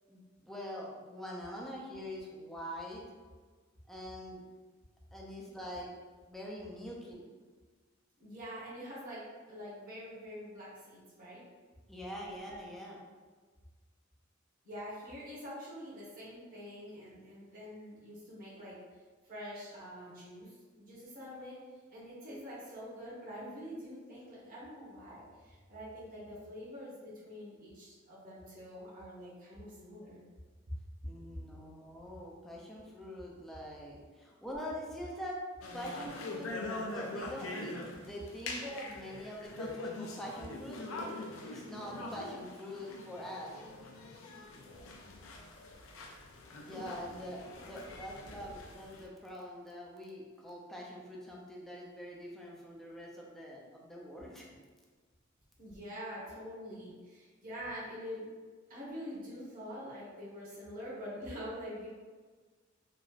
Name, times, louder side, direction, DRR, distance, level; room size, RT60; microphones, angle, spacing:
voice 1, 0.1-3.0 3.9-4.4 5.1-5.9 6.3-7.3 11.9-13.0 31.0-35.4 35.7-36.5 36.9-40.8 41.4-43.5 46.6-54.5, equal, ahead, -4 dB, 0.4 m, -44 dB
voice 2, 8.2-11.4 14.6-18.8 19.2-21.6 21.9-30.2 54.5-54.6 55.6-58.3 58.7-61.9, equal, 45° right, -9 dB, 1.1 m, -45 dB
sound 1, 35.6-49.0, left 2 dB, 90° left, 0.4 m, -43 dB
3.0 x 2.5 x 2.4 m, 1.4 s
head